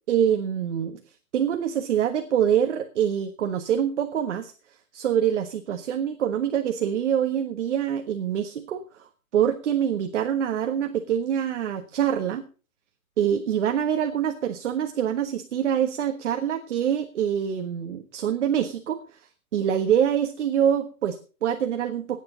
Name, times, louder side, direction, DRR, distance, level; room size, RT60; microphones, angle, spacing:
voice 1, 0.1-1.0 1.3-4.5 4.9-12.4 13.2-19.0 19.5-22.2, right 9 dB, 55° right, 7 dB, 1.5 m, -25 dB
17.0 x 9.8 x 4.0 m, 0.36 s
hypercardioid pair, 160°, 44 cm